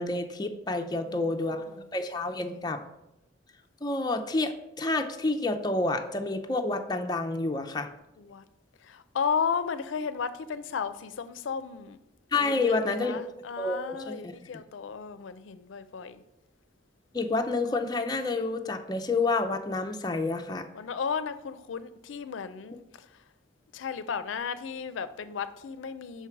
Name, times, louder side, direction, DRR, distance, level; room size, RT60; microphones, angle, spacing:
voice 1, 0.0-1.6 1.9-2.8 3.8-4.5 4.8-7.9 12.3-13.2 13.6-13.8 14.1-14.3 17.1-20.7, left 3 dB, 20° left, 0.5 m, -29 dB
voice 2, 0.9-1.8 2.5-2.7 8.2-8.4 8.8-12.0 12.4-16.2 20.7-23.2 23.7-26.3, left 6 dB, 85° left, 0.4 m, -34 dB
5.7 x 4.6 x 5.8 m
head